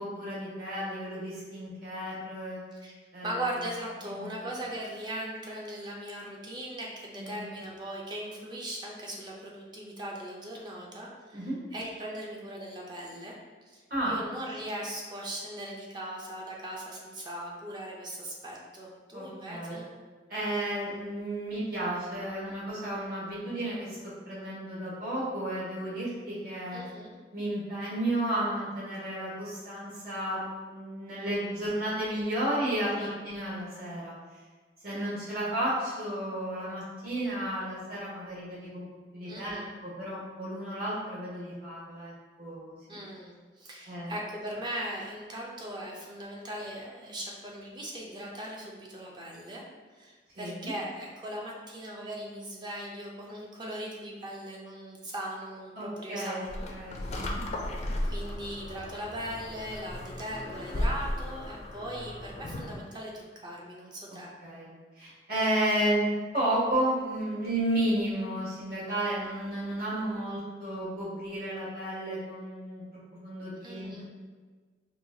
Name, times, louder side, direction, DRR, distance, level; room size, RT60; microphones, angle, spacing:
voice 1, 0.0-2.6 3.1-3.4 4.0-4.3 7.2-7.4 11.3-11.6 13.9-14.1 19.1-19.7 20.3-24.0 24.2-26.8 27.3-34.1 34.8-38.9 39.1-42.7 43.9-44.1 50.4-50.7 55.7-57.4 64.4-72.8 73.2-74.1, right 1 dB, 55° right, -8 dB, 1.5 m, -32 dB
voice 2, 3.2-11.4 11.7-13.3 13.7-19.9 26.7-27.1 33.0-33.1 39.2-39.7 42.9-49.6 49.9-56.7 57.0-57.1 58.0-64.3 73.6-74.1, right 1 dB, 25° right, -2 dB, 0.5 m, -39 dB
sound 1, 56.5-62.8, left 1 dB, 40° left, 0.4 m, -35 dB
4.5 x 2.3 x 2.7 m, 1.4 s
head